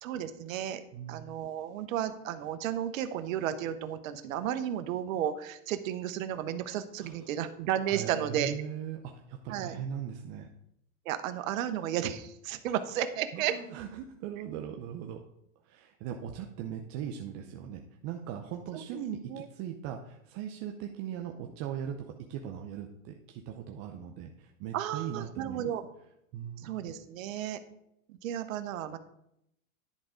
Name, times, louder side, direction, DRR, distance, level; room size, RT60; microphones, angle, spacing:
voice 1, 0.0-0.8 1.1-8.5 9.5-9.7 11.1-13.5 19.3-19.5 24.7-25.8 26.6-27.6 28.1-29.0, right 10 dB, 70° right, 10 dB, 0.9 m, -33 dB
voice 2, 0.9-1.3 7.0-7.2 7.9-10.5 13.3-15.2 15.6-25.7 26.3-26.7, right 9 dB, 35° right, 3 dB, 0.6 m, -39 dB
10.5 x 3.6 x 5.0 m, 0.78 s
supercardioid pair, 140°, 41 cm